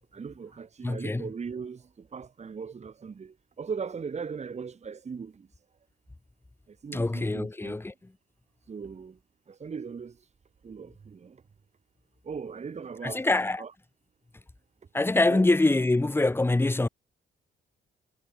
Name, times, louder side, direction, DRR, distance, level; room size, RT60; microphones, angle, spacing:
voice 1, 0.1-5.5 6.7-7.7 8.7-9.2 9.5-10.2 10.6-11.4 12.2-13.2 13.6-13.7 15.3-15.5, right 6 dB, 35° right, 1.6 m, -39 dB
voice 2, 0.8-1.3 6.9-8.1 13.0-13.6 14.9-16.9, left 2 dB, 10° left, 1.0 m, -25 dB
cardioid pair, 90°, 20 cm